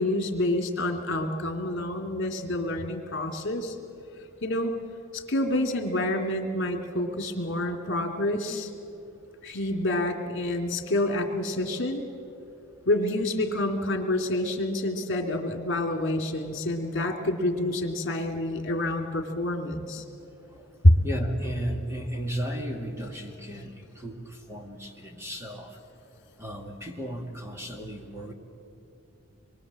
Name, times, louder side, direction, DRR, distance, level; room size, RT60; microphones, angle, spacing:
voice 1, 0.0-3.8 4.4-4.8 5.1-8.7 9.4-12.0 12.9-20.0 20.8-20.9, left 1 dB, 55° left, 4 dB, 2.5 m, -27 dB
voice 2, 21.0-25.8 26.4-28.3, equal, 10° right, 2 dB, 2.2 m, -35 dB
25.5 x 23.0 x 7.6 m, 2.8 s
head